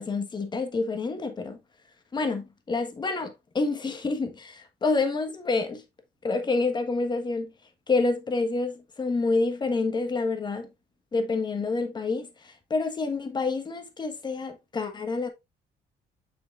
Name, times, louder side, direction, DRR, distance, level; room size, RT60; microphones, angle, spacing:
voice 1, 0.0-1.6 2.1-5.8 6.2-7.5 7.9-10.7 11.1-15.3, left 3 dB, 25° left, 1.4 m, -28 dB
6.9 x 5.8 x 2.5 m
cardioid pair, 110°, 17 cm